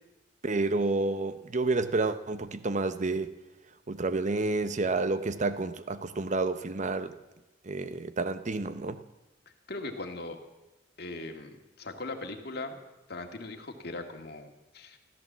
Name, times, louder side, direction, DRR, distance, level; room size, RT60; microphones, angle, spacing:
voice 1, 0.4-3.3 3.9-7.1 7.6-9.0, right 3 dB, 40° right, 12 dB, 0.9 m, -29 dB
voice 2, 9.7-10.4 11.0-12.8 13.1-15.0, left 2 dB, 60° left, 4 dB, 2.0 m, -39 dB
14.5 x 13.5 x 7.4 m, 1.0 s
head